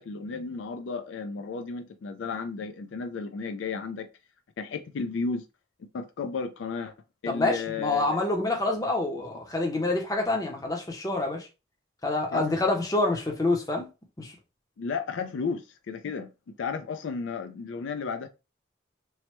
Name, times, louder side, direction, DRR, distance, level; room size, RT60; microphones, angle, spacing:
voice 1, 0.0-4.1 4.6-5.5 5.8-6.9 7.2-8.2 12.3-12.6 14.8-18.3, left 4 dB, 75° left, 0.4 m, -33 dB
voice 2, 7.3-11.5 12.0-13.9 14.2-14.4, left 2 dB, 20° left, 0.6 m, -27 dB
3.1 x 2.1 x 2.9 m
head